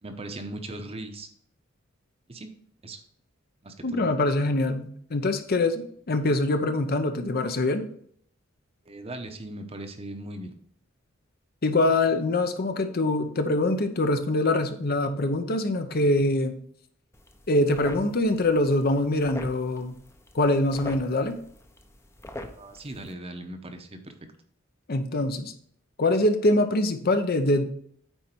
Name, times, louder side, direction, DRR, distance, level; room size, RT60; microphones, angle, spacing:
voice 1, 0.0-1.3 2.3-2.5 2.8-3.0 3.6-4.1 8.8-10.6 22.6-24.1, right 1 dB, 30° right, 7 dB, 0.8 m, -38 dB
voice 2, 3.8-7.8 11.6-16.6 17.5-20.0 20.3-21.4 24.9-25.5 26.0-27.7, left 2 dB, 50° left, 8 dB, 0.7 m, -24 dB
sound 1, 17.1-23.1, left 1 dB, 15° left, 0.7 m, -43 dB
8.9 x 4.4 x 4.4 m, 0.63 s
head